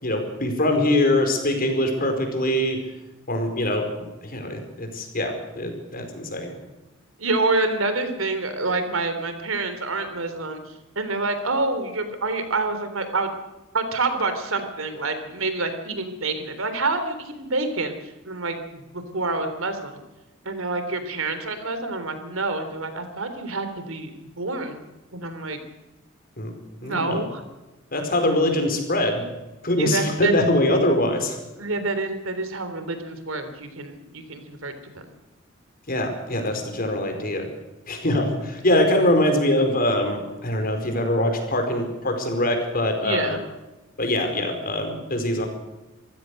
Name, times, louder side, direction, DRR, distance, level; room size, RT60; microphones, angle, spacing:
voice 1, 0.0-2.8 3.3-3.8 4.2-6.6 26.4-26.5 26.8-27.2 27.9-29.2 29.6-31.4 35.9-37.4 37.9-43.4 44.0-45.5, left 1 dB, 45° left, 5 dB, 4.9 m, -23 dB
voice 2, 7.2-10.6 11.0-13.3 13.7-17.9 18.3-20.0 20.5-24.9 25.1-25.6 26.8-27.4 29.8-30.3 31.6-35.1 43.0-43.4, right 3 dB, 85° right, 8 dB, 3.5 m, -27 dB
26.0 x 15.5 x 6.7 m, 1.0 s
head